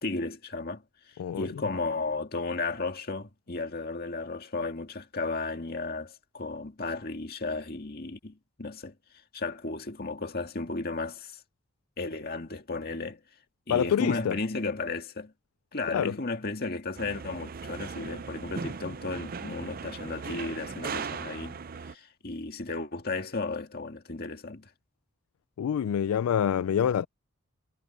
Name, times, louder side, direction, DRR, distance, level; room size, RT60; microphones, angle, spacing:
voice 1, 0.0-8.9 9.3-11.4 12.0-13.2 13.7-15.3 15.7-21.6 21.8-24.7, left 3 dB, 45° left, 2.0 m, -34 dB
voice 2, 13.7-14.4 15.9-16.1 25.6-27.1, left 8 dB, 80° left, 0.3 m, -26 dB
sound 1, 16.9-21.9, right 5 dB, 40° right, 0.5 m, -38 dB
head